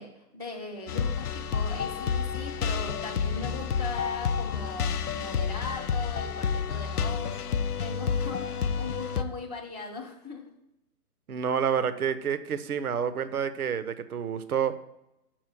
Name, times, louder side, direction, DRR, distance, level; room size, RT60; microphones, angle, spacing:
voice 1, 0.0-7.4 7.8-10.5, left 3 dB, 25° right, -1 dB, 0.4 m, -39 dB
sound 1, 0.9-9.2, left 6 dB, 65° left, 0.6 m, -29 dB
voice 2, 11.3-14.7, right 7 dB, 60° right, 12 dB, 0.7 m, -28 dB
6.1 x 4.2 x 6.2 m, 0.86 s
figure-of-eight pair, 135°, 49 cm